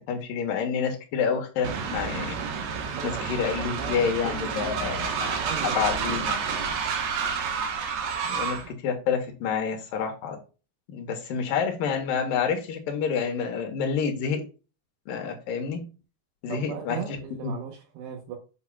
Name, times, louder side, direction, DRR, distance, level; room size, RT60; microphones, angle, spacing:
voice 1, 0.0-2.4 3.0-6.5 8.3-10.4 10.9-14.4 15.1-15.8 16.4-17.0 17.4-17.6, left 6 dB, 65° left, 4 dB, 2.6 m, -28 dB
Train, 1.6-8.7, right 6 dB, 70° right, 2.9 m, -30 dB
voice 2, 2.9-6.3 8.2-8.5 16.5-18.4, right 7 dB, 85° right, 0 dB, 3.3 m, -38 dB
8.4 x 6.3 x 2.4 m, 0.33 s
omnidirectional pair, 4.8 m